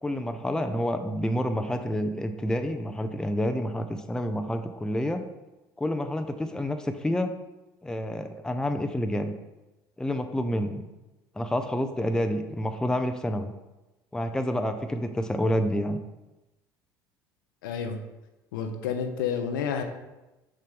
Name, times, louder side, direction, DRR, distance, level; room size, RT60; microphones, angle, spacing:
voice 1, 0.0-5.2 5.8-7.3 7.8-9.3 10.0-10.8 11.4-13.5 14.1-16.0, left 1 dB, 5° left, 7 dB, 0.6 m, -28 dB
voice 2, 17.6-18.0 18.5-19.8, left 7 dB, 65° left, 6 dB, 0.7 m, -30 dB
6.7 x 6.4 x 3.7 m, 1.0 s
figure-of-eight pair, 65°, 11 cm